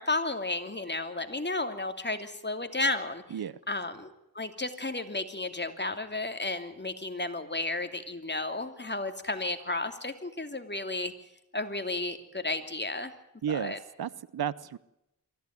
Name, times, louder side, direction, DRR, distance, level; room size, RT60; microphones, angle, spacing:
voice 1, 0.0-3.2 3.7-11.1 11.5-13.1 13.5-13.8, left 2 dB, 30° left, 8 dB, 2.9 m, -33 dB
voice 2, 13.4-14.8, right 9 dB, 80° right, 20 dB, 0.8 m, -33 dB
24.0 x 15.0 x 9.5 m, 0.87 s
cardioid pair, 45°, 37 cm